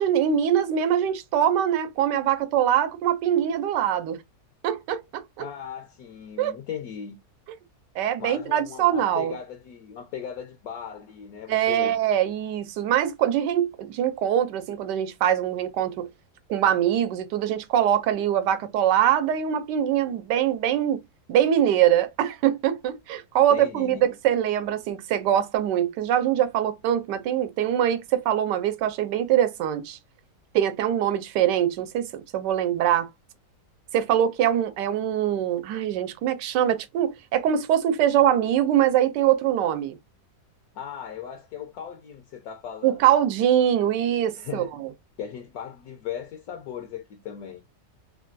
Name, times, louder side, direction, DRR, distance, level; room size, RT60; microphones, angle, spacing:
voice 1, 0.0-4.2 4.6-5.2 6.4-6.6 8.0-9.3 11.5-16.1 16.5-21.0 21.3-30.0 30.5-33.1 33.9-40.0 42.8-44.9, right 10 dB, 85° right, 1.2 m, -23 dB
voice 2, 5.4-7.2 8.2-12.0 23.5-24.0 40.7-43.0 44.3-44.7 45.2-47.6, left 8 dB, 70° left, 1.0 m, -37 dB
3.3 x 2.2 x 2.5 m
omnidirectional pair, 1.8 m